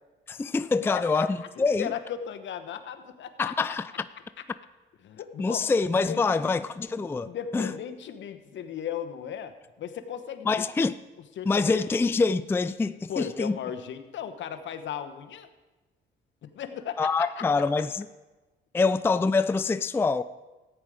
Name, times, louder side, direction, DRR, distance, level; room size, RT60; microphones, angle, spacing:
voice 1, 0.3-1.9 3.4-4.1 5.4-7.7 10.5-11.0 11.5-13.6 17.0-18.1 18.7-20.2, left 4 dB, 10° left, 0.4 m, -25 dB
voice 2, 0.9-3.5 5.0-5.7 6.0-6.5 7.2-10.9 11.4-11.9 13.1-15.5 16.4-17.4, left 9 dB, 70° left, 1.1 m, -36 dB
14.5 x 9.2 x 4.9 m
cardioid pair, 90°, 20 cm